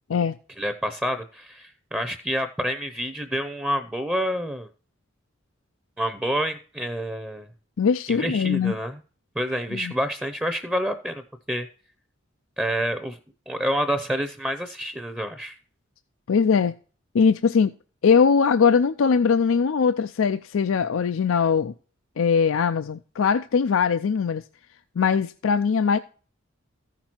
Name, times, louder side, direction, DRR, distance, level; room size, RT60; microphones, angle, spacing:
voice 1, 0.6-4.7 6.0-7.5 8.1-9.0 9.4-11.2 11.5-11.7 12.6-13.2 13.5-15.6, equal, 5° right, 0.6 m, -28 dB
voice 2, 7.8-8.7 9.7-9.9 16.3-16.7 17.1-17.7 18.0-21.7 22.2-24.4 25.0-26.0, left 6 dB, 90° left, 0.4 m, -21 dB
14.5 x 6.0 x 4.4 m
head